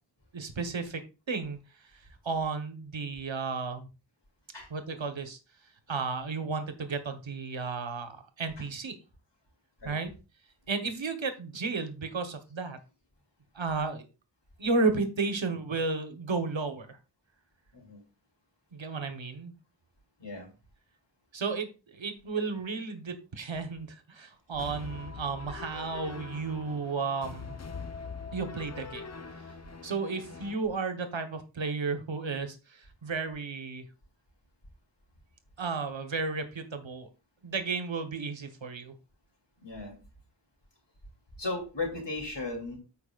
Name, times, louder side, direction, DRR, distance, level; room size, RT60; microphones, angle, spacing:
voice 1, 0.3-1.0 1.3-1.6 2.2-3.9 4.7-5.4 5.9-8.9 9.8-10.1 10.7-12.8 13.5-14.0 14.6-17.0 18.7-19.5 21.3-27.6 28.3-29.0 29.8-33.8 35.6-37.1 37.4-38.9, right 4 dB, 80° right, 8 dB, 1.2 m, -33 dB
voice 2, 20.2-20.5 39.6-40.0 41.4-42.8, left 3 dB, 65° left, 1 dB, 2.8 m, -36 dB
sound 1, 24.6-30.5, left 5 dB, 35° left, 0.7 m, -43 dB
13.5 x 4.8 x 2.4 m, 0.31 s
wide cardioid pair, 60°, 45 cm